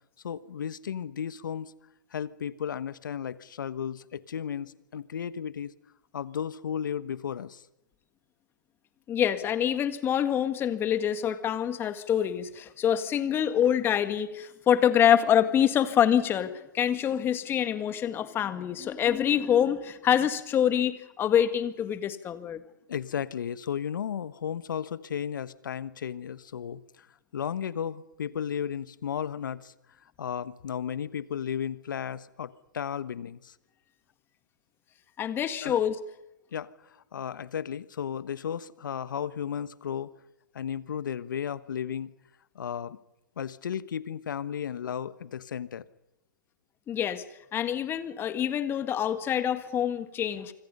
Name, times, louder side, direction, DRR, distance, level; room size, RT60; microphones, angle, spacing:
voice 1, 0.2-1.7 2.1-5.7 6.1-7.6 22.9-27.1 27.3-29.7 30.2-33.5 35.6-35.8 36.5-40.1 40.5-42.1 42.5-43.0 43.4-45.8, left 8 dB, 70° left, 15 dB, 1.3 m, -34 dB
voice 2, 9.1-22.6 35.2-36.0 46.9-47.2 47.5-50.5, left 9 dB, 20° left, 10 dB, 1.7 m, -26 dB
28.5 x 25.5 x 5.6 m, 0.88 s
hypercardioid pair, 130°, 11 cm